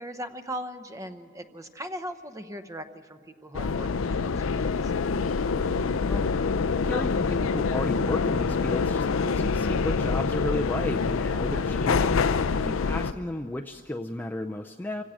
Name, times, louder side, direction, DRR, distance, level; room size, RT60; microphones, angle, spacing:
voice 1, 0.0-4.9, equal, 15° right, 10 dB, 0.8 m, -39 dB
sound 1, 3.5-13.1, left 4 dB, 80° left, 0.5 m, -26 dB
voice 2, 6.1-15.0, left 1 dB, 10° left, 4 dB, 0.4 m, -34 dB
27.0 x 16.5 x 6.3 m, 2.5 s
head